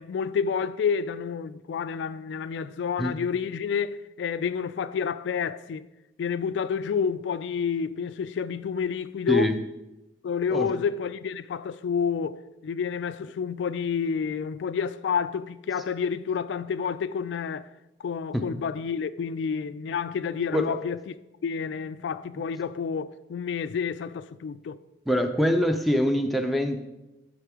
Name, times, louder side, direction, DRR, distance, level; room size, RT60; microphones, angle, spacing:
voice 1, 0.0-5.9 6.2-9.5 10.2-17.7 18.0-21.0 21.4-24.8, left 6 dB, 80° left, 0.3 m, -29 dB
voice 2, 25.1-26.8, equal, ahead, 0.5 m, -24 dB
10.0 x 3.7 x 4.8 m
head